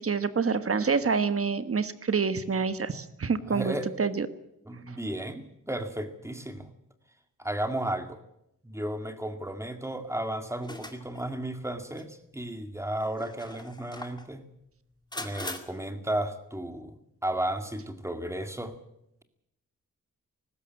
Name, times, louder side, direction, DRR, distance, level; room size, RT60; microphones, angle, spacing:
voice 1, 0.0-4.3, right 5 dB, 45° right, 12 dB, 1.4 m, -27 dB
voice 2, 3.5-3.9 4.7-6.7 7.4-8.2 8.6-14.4 15.2-17.0 17.2-18.8, right 1 dB, 10° right, 7 dB, 2.1 m, -34 dB
sound 1, 10.6-11.3 12.0-12.1 13.0-14.3 15.1-15.6, left 2 dB, 15° left, 2.2 m, -40 dB
19.5 x 16.0 x 9.1 m, 0.81 s
wide cardioid pair, 145°, 33 cm